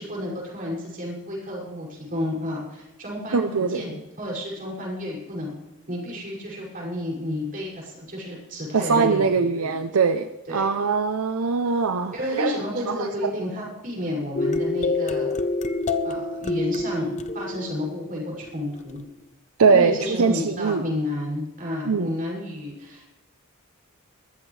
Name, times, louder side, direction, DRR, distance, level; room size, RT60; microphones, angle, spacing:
voice 1, 0.0-5.6 5.9-9.7 10.5-10.7 12.1-15.3 16.0-19.1 19.7-23.1, left 1 dB, 40° right, -3 dB, 6.3 m, -31 dB
voice 2, 3.3-3.8 8.7-12.6 12.9-13.3 19.6-20.8 21.9-22.1, right 5 dB, 80° right, 9 dB, 0.6 m, -22 dB
sound 1, 14.4-18.8, left 2 dB, 35° left, 0.7 m, -27 dB
22.0 x 14.0 x 3.3 m, 0.97 s
head